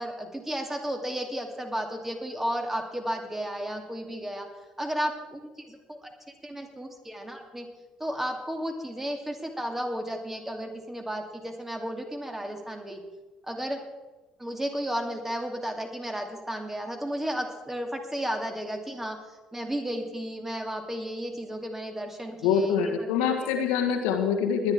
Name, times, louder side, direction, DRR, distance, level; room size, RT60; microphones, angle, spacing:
voice 1, 0.0-4.5 4.8-6.1 6.4-7.7 8.0-13.0 13.4-13.8 14.4-23.7, equal, 10° right, 4 dB, 2.6 m, -33 dB
voice 2, 22.4-24.7, left 7 dB, 70° left, 4 dB, 1.6 m, -25 dB
21.0 x 10.5 x 3.7 m, 1.2 s
figure-of-eight pair, 50°, 3 cm